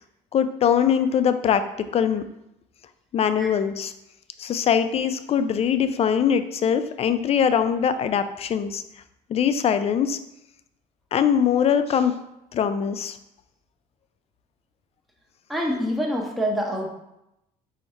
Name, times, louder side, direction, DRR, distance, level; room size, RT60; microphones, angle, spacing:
voice 1, 0.3-2.2 3.1-3.9 4.4-8.8 9.3-10.2 11.1-12.1 12.5-13.2, left 8 dB, 40° left, 10 dB, 0.4 m, -22 dB
voice 2, 15.5-16.9, equal, ahead, -1 dB, 0.8 m, -26 dB
4.4 x 2.8 x 4.2 m, 0.86 s
cardioid pair, 100°, 16 cm